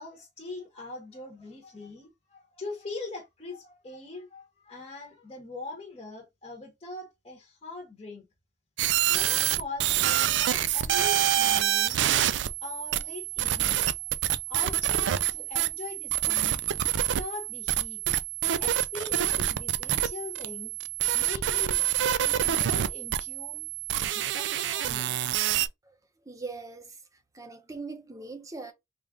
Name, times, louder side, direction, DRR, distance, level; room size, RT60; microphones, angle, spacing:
voice 1, 0.0-8.3 9.0-13.9 14.5-16.6 16.9-18.0 18.6-20.8 21.1-21.9 22.2-23.7 24.0-25.3, left 3 dB, 30° left, 1.0 m, -42 dB
sound 1, 8.8-25.7, right 12 dB, 70° right, 0.3 m, -27 dB
voice 2, 26.3-27.0 27.3-28.7, right 3 dB, 20° right, 0.6 m, -40 dB
3.6 x 2.4 x 3.5 m
head